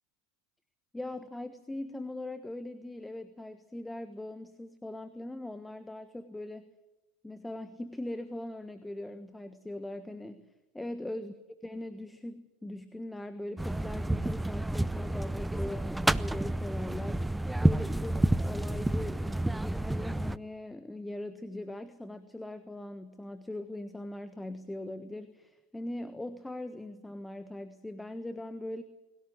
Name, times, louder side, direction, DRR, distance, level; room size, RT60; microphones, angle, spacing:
voice 1, 0.9-6.7 7.2-10.5 10.7-11.3 11.6-17.3 17.6-28.8, left 1 dB, 10° left, 10 dB, 1.4 m, -40 dB
sound 1, 13.6-20.4, right 1 dB, 5° right, 0.7 m, -30 dB
20.5 x 17.5 x 9.5 m, 1.0 s
hypercardioid pair, 80°, 0 cm